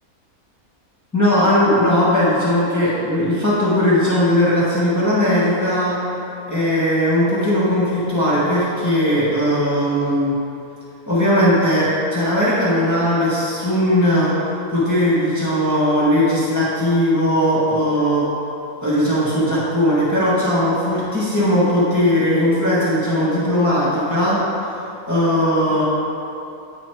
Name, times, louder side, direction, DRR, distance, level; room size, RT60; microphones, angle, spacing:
voice 1, 1.1-6.0 6.5-10.3 11.1-14.3 14.7-18.2 18.8-24.7 25.1-25.8, equal, 10° left, -10 dB, 1.4 m, -18 dB
8.4 x 4.1 x 4.5 m, 2.8 s
omnidirectional pair, 1.5 m